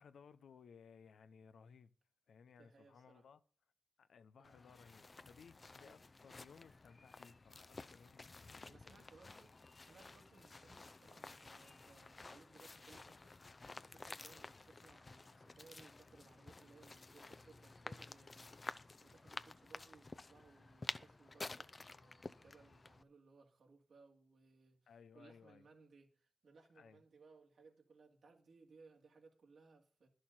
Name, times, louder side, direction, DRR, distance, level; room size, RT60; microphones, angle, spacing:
voice 1, 0.0-1.9 2.3-3.4 4.0-8.9 24.9-25.7 26.7-27.0, left 6 dB, 90° left, 0.8 m, -61 dB
voice 2, 2.6-3.3 4.4-4.6 5.8-6.0 8.6-9.5 9.8-30.1, right 4 dB, 80° right, 2.6 m, -65 dB
sound 1, 4.4-23.0, left 3 dB, 40° left, 0.7 m, -52 dB
11.5 x 6.6 x 7.5 m
cardioid pair, 50°, 0 cm